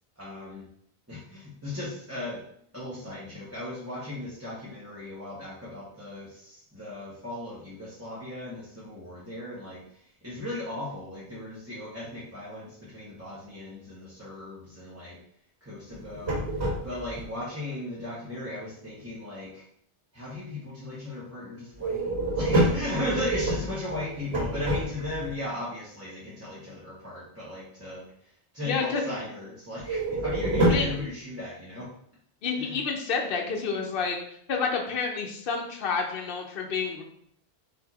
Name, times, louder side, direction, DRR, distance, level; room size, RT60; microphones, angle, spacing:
voice 1, 0.2-0.6 1.1-2.4 2.7-15.2 15.6-19.6 20.1-31.9 32.6-32.8, left 2 dB, 15° right, -9 dB, 1.0 m, -37 dB
sound 1, 15.9-17.3 21.8-25.3 29.8-31.0, right 1 dB, 75° right, 1.9 m, -27 dB
voice 2, 28.6-29.0 30.7-30.9 32.4-34.2 34.5-37.0, left 5 dB, 60° left, 1 dB, 0.9 m, -29 dB
4.8 x 2.7 x 4.1 m, 0.67 s
omnidirectional pair, 1.1 m